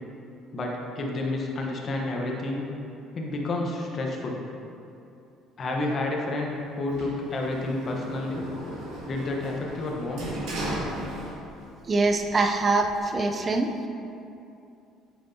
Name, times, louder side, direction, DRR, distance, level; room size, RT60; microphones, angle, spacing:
voice 1, 0.5-2.7 3.1-4.4 5.6-8.5 9.1-10.3, left 2 dB, 40° left, 0 dB, 1.0 m, -30 dB
Sliding door, 6.9-11.7 12.1-13.0, right 1 dB, 75° right, 1.6 m, -36 dB
voice 2, 11.9-13.7, right 3 dB, 30° right, 4 dB, 0.5 m, -24 dB
8.4 x 6.1 x 2.8 m, 2.6 s
cardioid pair, 110°, 0 cm